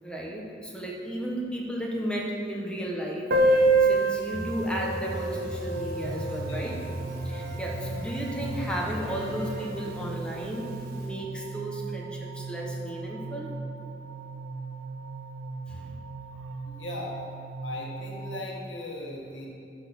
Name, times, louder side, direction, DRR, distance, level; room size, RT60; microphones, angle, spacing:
voice 1, 0.0-6.8 7.2-13.5 15.7-15.9, right 1 dB, 5° left, -2 dB, 1.2 m, -34 dB
Piano, 3.3-8.7 8.9-9.0 9.2-9.4 9.7-9.8 10.6-10.7, right 2 dB, 55° right, 1.0 m, -27 dB
sound 1, 4.3-9.9, equal, 20° right, 1.4 m, -38 dB
sound 2, 5.7-18.4, right 4 dB, 85° right, 0.4 m, -39 dB
voice 2, 16.7-17.1 17.6-19.5, left 2 dB, 80° left, -3 dB, 1.5 m, -38 dB
12.0 x 4.2 x 6.1 m, 2.4 s
head